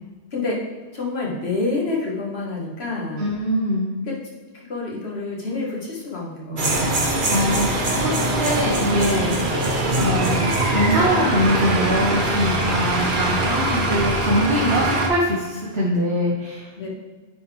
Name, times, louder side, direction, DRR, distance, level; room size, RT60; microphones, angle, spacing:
voice 1, 0.9-3.3 4.0-4.2 4.5-7.2 16.8-16.9, left 3 dB, 85° left, -4 dB, 1.9 m, -28 dB
voice 2, 3.2-3.9 7.3-9.3 10.0-16.9, equal, 85° right, -5 dB, 1.5 m, -23 dB
sound 1, 6.6-15.1, right 1 dB, 55° right, 1.1 m, -22 dB
9.3 x 4.7 x 3.3 m, 1.4 s
omnidirectional pair, 1.0 m